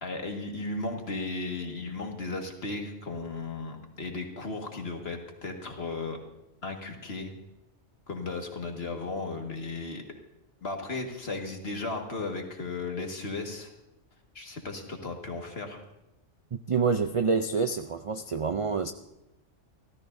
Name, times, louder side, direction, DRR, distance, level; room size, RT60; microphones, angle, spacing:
voice 1, 0.0-6.2 6.6-7.3 8.1-10.0 10.6-13.7 14.4-15.8, left 3 dB, 55° left, 2 dB, 2.0 m, -35 dB
voice 2, 16.5-18.9, right 5 dB, 60° right, 8 dB, 0.3 m, -27 dB
28.0 x 14.0 x 2.6 m, 0.94 s
omnidirectional pair, 1.3 m